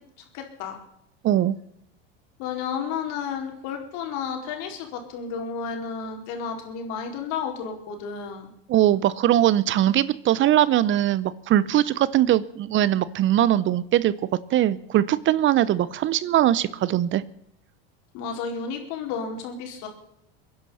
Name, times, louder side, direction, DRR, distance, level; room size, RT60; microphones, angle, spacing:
voice 1, 0.3-0.8 2.4-8.5 18.1-19.9, left 6 dB, 65° left, 3 dB, 4.5 m, -32 dB
voice 2, 1.2-1.6 8.7-14.1 14.5-17.2, right 12 dB, 40° right, 19 dB, 0.8 m, -21 dB
23.5 x 10.5 x 5.7 m, 0.76 s
supercardioid pair, 105°, 31 cm